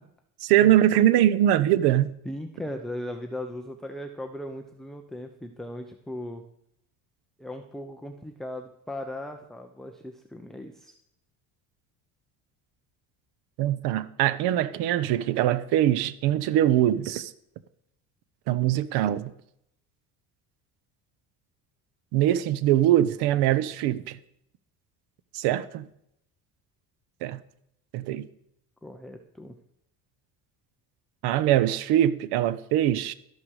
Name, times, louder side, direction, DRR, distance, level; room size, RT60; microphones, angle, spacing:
voice 1, 0.4-2.1 13.6-17.3 18.5-19.3 22.1-24.2 25.3-25.9 27.2-27.4 27.9-28.3 31.2-33.1, right 12 dB, 85° right, 1.0 m, -22 dB
voice 2, 2.2-6.5 7.4-10.9 28.8-29.5, left 1 dB, ahead, 0.9 m, -38 dB
13.0 x 11.5 x 4.9 m
cardioid pair, 130°, 38 cm